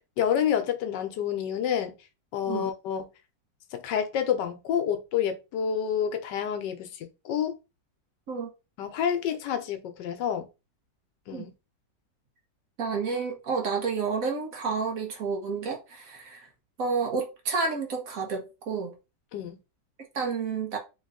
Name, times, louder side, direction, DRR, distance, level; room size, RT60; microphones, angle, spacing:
voice 1, 0.2-1.9 2.3-3.1 3.7-7.5 8.8-10.5 11.3-11.5 19.3-19.6, left 8 dB, 75° left, 1.3 m, -28 dB
voice 2, 12.8-16.5 16.8-18.9 20.1-20.8, right 5 dB, 55° right, 1.3 m, -30 dB
3.4 x 3.0 x 3.6 m
omnidirectional pair, 1.9 m